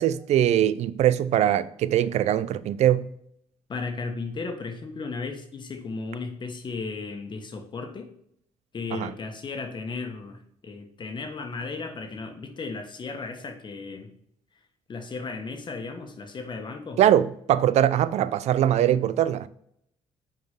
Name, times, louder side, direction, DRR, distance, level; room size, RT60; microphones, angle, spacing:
voice 1, 0.0-3.1 8.9-9.1 17.0-19.5, right 11 dB, 70° right, 0.5 m, -22 dB
voice 2, 3.7-8.1 8.7-14.1 14.9-17.0, left 4 dB, 40° left, 1.3 m, -35 dB
6.4 x 4.5 x 5.8 m
cardioid pair, 95°, 12 cm